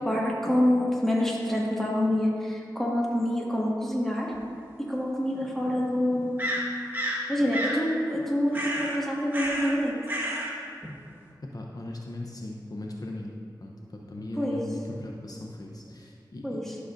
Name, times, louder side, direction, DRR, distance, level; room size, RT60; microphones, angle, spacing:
voice 1, 0.0-4.3 4.9-6.4 7.3-10.0 14.4-14.6 16.4-16.8, left 1 dB, 5° left, -4 dB, 1.7 m, -26 dB
sound 1, 4.3-4.4 6.4-7.2 7.5-7.8 8.5-9.0 9.3-9.8 10.1-10.5, equal, 25° right, 1.4 m, -30 dB
voice 2, 11.4-13.3 13.6-16.6, left 1 dB, 55° left, -1 dB, 0.7 m, -38 dB
12.0 x 6.5 x 2.6 m, 2.2 s
wide cardioid pair, 50°, 8 cm